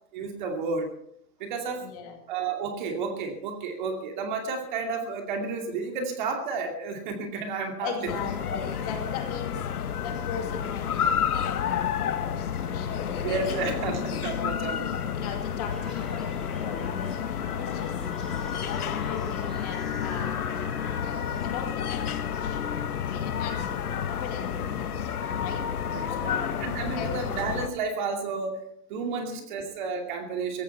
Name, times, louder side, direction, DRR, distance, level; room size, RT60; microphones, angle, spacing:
voice 1, 0.1-0.9 1.4-1.9 2.3-8.3 13.2-14.9 25.9-26.3 26.6-28.6 28.9-30.6, right 4 dB, 30° right, 4 dB, 2.6 m, -31 dB
voice 2, 1.8-2.2 7.8-11.0 11.3-14.0 14.3-14.5 14.8-18.4 18.7-20.4 21.0-22.6 23.1-25.6 26.1-26.5 26.8-27.2 29.1-29.5, left 7 dB, 25° left, 4 dB, 2.1 m, -39 dB
sound 1, 8.1-27.7, left 8 dB, 70° left, 1.9 m, -30 dB
sound 2, 15.7-21.5, left 1 dB, ahead, 1.6 m, -44 dB
17.5 x 15.5 x 4.6 m, 0.66 s
hypercardioid pair, 175°, 47 cm